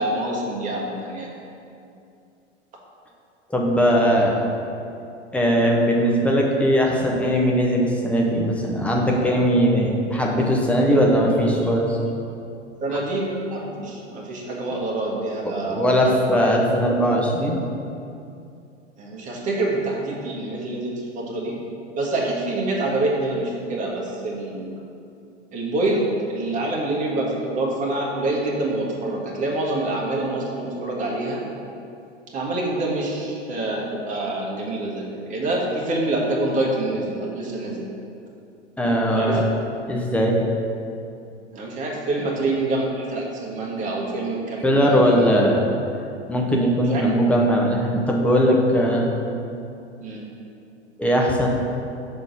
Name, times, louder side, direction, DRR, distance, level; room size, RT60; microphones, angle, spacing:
voice 1, 0.0-1.3 12.8-16.1 19.0-21.6 22.0-24.8 25.5-31.4 32.3-37.9 39.2-39.4 41.5-45.3 46.9-47.0 50.0-50.3, right 2 dB, 20° right, -3 dB, 1.2 m, -26 dB
voice 2, 3.5-4.3 5.3-12.0 15.7-17.6 38.8-39.4 39.9-40.4 44.6-45.6 46.3-49.1 51.0-51.5, equal, 5° left, -2 dB, 0.6 m, -19 dB
5.4 x 3.8 x 5.9 m, 2.6 s
figure-of-eight pair, 95°, 36 cm